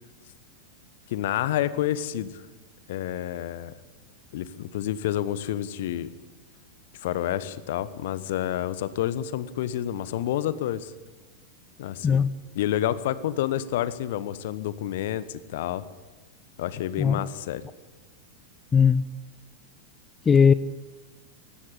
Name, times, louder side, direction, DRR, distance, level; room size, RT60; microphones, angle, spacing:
voice 1, 1.1-2.4 2.9-3.7 4.3-6.1 7.0-10.9 11.8-12.2 12.5-15.8 16.6-17.6, left 12 dB, 55° left, 16 dB, 1.2 m, -29 dB
voice 2, 18.7-19.0 20.3-20.5, left 6 dB, 20° left, 17 dB, 0.6 m, -18 dB
18.5 x 16.5 x 9.9 m, 1.3 s
figure-of-eight pair, 90°, 0 cm